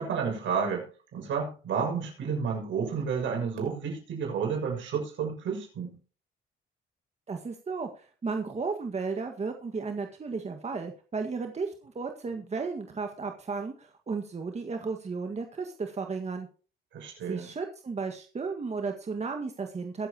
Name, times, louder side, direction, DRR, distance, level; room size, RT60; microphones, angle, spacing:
voice 1, 0.0-5.9 16.9-17.5, right 6 dB, 70° right, 1 dB, 6.7 m, -31 dB
voice 2, 7.3-16.5 17.3-20.1, right 4 dB, 35° right, 4 dB, 1.8 m, -34 dB
22.5 x 7.9 x 3.0 m, 0.37 s
cardioid pair, 90°, 20 cm